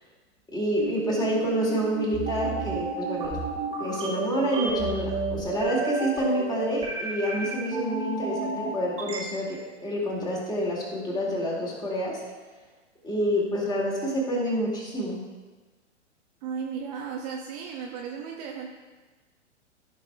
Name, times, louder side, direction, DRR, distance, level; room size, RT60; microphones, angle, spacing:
voice 1, 0.5-3.4 3.8-12.2 13.0-15.2, equal, 10° left, -4 dB, 2.2 m, -28 dB
sound 1, 0.8-9.2, right 4 dB, 15° right, 1.6 m, -31 dB
voice 2, 16.4-18.7, right 6 dB, 35° right, 0 dB, 0.8 m, -35 dB
14.5 x 5.9 x 2.3 m, 1.3 s
figure-of-eight pair, 110°, 36 cm